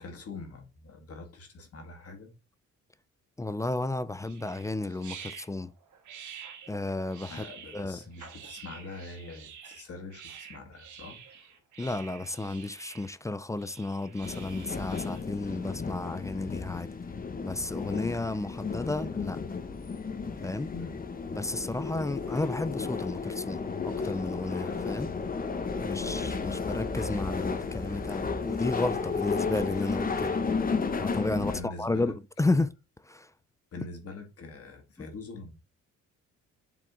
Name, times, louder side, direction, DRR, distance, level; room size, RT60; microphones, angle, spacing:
voice 1, 0.0-2.3 7.3-11.5 20.7-21.0 26.0-26.2 31.4-32.2 33.7-35.6, left 3 dB, 50° left, 2.0 m, -44 dB
voice 2, 3.4-5.7 6.7-7.4 7.7-8.0 11.8-16.9 17.4-19.4 20.4-20.7 21.3-25.1 25.8-30.4 31.0-32.7 33.0-33.3, left 2 dB, 10° left, 0.3 m, -32 dB
sound 1, 4.2-15.2, right 8 dB, 75° right, 1.5 m, -48 dB
sound 2, 14.2-31.6, left 5 dB, 30° left, 0.9 m, -33 dB
7.5 x 3.6 x 3.7 m
cardioid pair, 90°, 30 cm